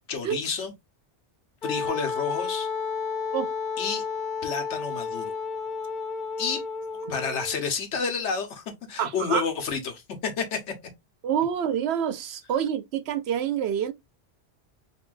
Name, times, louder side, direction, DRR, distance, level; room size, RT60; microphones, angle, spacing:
voice 1, 0.1-0.7 1.6-2.7 3.8-4.0 4.4-5.3 6.4-6.6 7.1-10.7, left 5 dB, 85° left, 1.2 m, -30 dB
Wind instrument woodwind instrument, 1.6-7.6, left 5 dB, 50° left, 1.0 m, -31 dB
voice 2, 9.0-9.4 11.2-13.9, right 9 dB, 70° right, 0.8 m, -27 dB
5.4 x 2.7 x 2.4 m
omnidirectional pair, 1.2 m